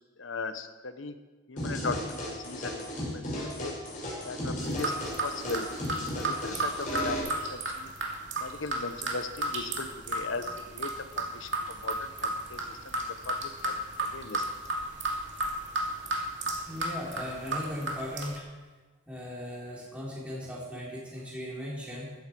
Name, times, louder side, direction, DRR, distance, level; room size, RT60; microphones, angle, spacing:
voice 1, 0.2-1.1 1.5-2.8 3.1-3.7 4.2-5.7 6.1-7.9 8.4-10.5 10.7-14.5, left 3 dB, 75° left, 9 dB, 1.0 m, -38 dB
sound 1, 1.6-7.2, equal, 40° left, 5.8 m, -35 dB
sound 2, 4.6-18.4, right 2 dB, 65° right, 2.4 m, -34 dB
voice 2, 16.7-18.4 19.1-22.1, equal, 5° right, -7 dB, 3.9 m, -38 dB
15.0 x 13.0 x 4.7 m, 1.3 s
head